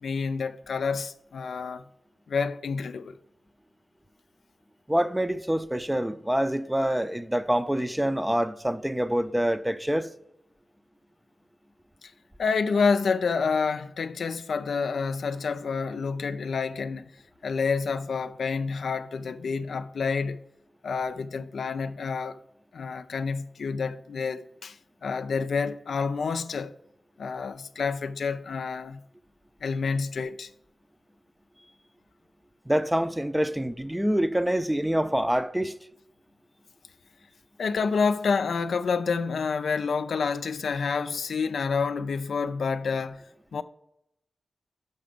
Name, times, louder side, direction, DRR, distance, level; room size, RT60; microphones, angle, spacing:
voice 1, 0.0-1.8 2.3-3.2 12.4-17.1 17.4-20.4 20.8-22.4 22.7-26.7 27.2-29.0 29.6-30.5 37.6-43.2 43.5-43.6, left 5 dB, 85° left, 0.3 m, -28 dB
voice 2, 4.9-10.1 32.7-35.8, equal, 10° right, 0.5 m, -26 dB
6.7 x 5.0 x 5.0 m
cardioid pair, 60°, 0 cm